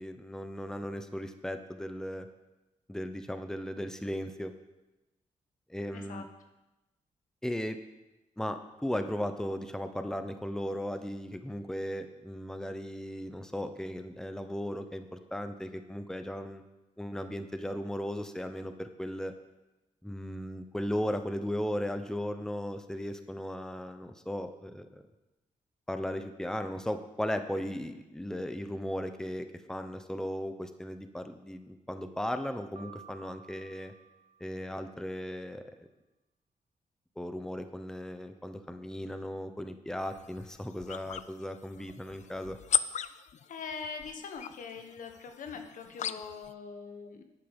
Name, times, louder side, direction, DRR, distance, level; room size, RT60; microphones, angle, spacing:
voice 1, 0.0-2.3 2.9-4.5 5.7-6.3 7.4-7.8 8.4-16.6 17.0-19.3 20.0-25.0 25.9-33.9 34.4-35.9 37.2-42.6, equal, 5° left, 8 dB, 0.9 m, -36 dB
voice 2, 5.9-6.2 43.5-47.2, left 5 dB, 80° left, 6 dB, 1.4 m, -42 dB
Piano, 32.8-34.9, right 6 dB, 50° right, 0.8 m, -54 dB
sound 1, 40.0-46.5, left 8 dB, 60° left, 0.5 m, -38 dB
11.5 x 8.7 x 5.4 m, 1.0 s
cardioid pair, 85°, 14 cm